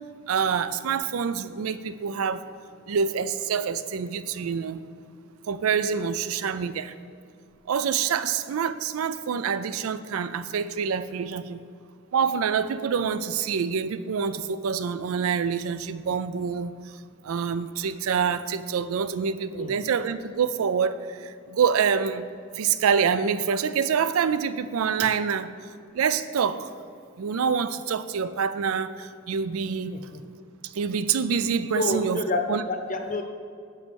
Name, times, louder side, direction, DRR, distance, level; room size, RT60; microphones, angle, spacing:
voice 1, 0.3-2.4 2.9-4.8 5.5-6.9 7.7-11.6 12.1-16.7 17.2-22.2 22.6-25.5 25.9-26.7 27.2-29.9 30.6-32.2 32.5-32.6, right 6 dB, 85° right, 14 dB, 0.4 m, -26 dB
voice 2, 31.7-33.2, left 2 dB, 40° left, 5 dB, 0.7 m, -29 dB
8.1 x 5.4 x 6.3 m, 2.3 s
head